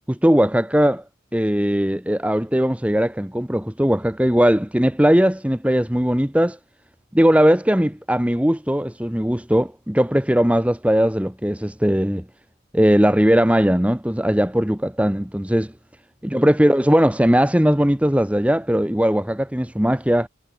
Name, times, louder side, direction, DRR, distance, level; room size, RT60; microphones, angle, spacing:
voice 1, 0.1-1.0 1.3-6.6 7.1-12.2 12.7-15.7 16.2-20.3, equal, 5° right, 1.1 m, -19 dB
head